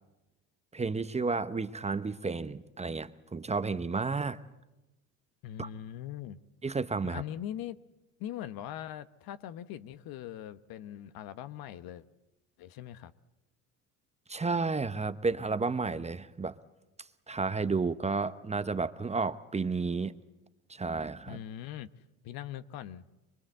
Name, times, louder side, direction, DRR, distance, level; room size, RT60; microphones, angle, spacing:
voice 1, 0.7-4.4 5.6-5.7 6.6-7.2 14.3-16.6 17.3-20.1 20.7-21.4, right 4 dB, 15° right, 0.9 m, -32 dB
voice 2, 5.4-6.4 7.0-7.8 8.2-12.1 12.6-13.1 21.3-21.9 22.2-23.1, left 11 dB, 60° left, 1.1 m, -41 dB
24.0 x 23.0 x 7.9 m
supercardioid pair, 85°, 40 cm